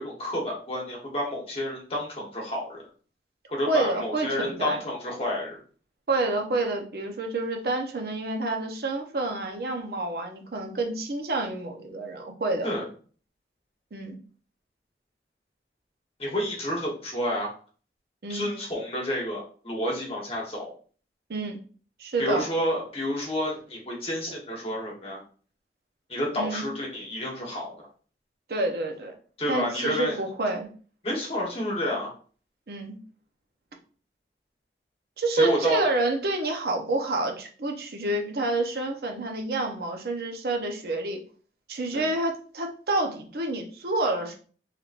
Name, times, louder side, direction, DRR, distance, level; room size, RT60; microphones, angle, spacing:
voice 1, 0.0-2.8 3.5-5.6 12.6-12.8 16.2-17.5 18.3-20.7 22.2-25.2 26.1-27.9 29.4-30.2 31.0-32.1 35.3-35.8 41.9-42.1, left 1 dB, 35° left, -2 dB, 1.0 m, -30 dB
voice 2, 3.7-4.8 6.1-12.7 13.9-14.2 18.2-18.5 21.3-21.6 22.0-22.5 26.4-26.6 28.5-29.1 29.5-30.7 32.7-33.0 35.2-41.2 41.7-44.4, right 2 dB, 60° right, 3 dB, 0.6 m, -28 dB
3.2 x 2.9 x 2.4 m, 0.41 s
head